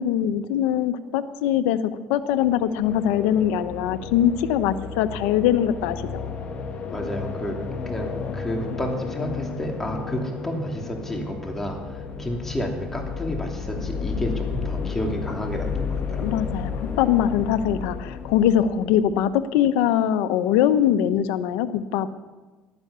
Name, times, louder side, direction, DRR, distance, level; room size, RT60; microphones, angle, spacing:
voice 1, 0.0-6.2 16.2-22.1, left 10 dB, 85° left, 11 dB, 0.9 m, -22 dB
sound 1, 2.2-19.3, left 5 dB, 50° left, 1.7 m, -32 dB
voice 2, 6.9-7.6 7.9-16.3, equal, 10° left, 1 dB, 2.9 m, -31 dB
14.5 x 12.5 x 6.9 m, 1.2 s
supercardioid pair, 95°, 3 cm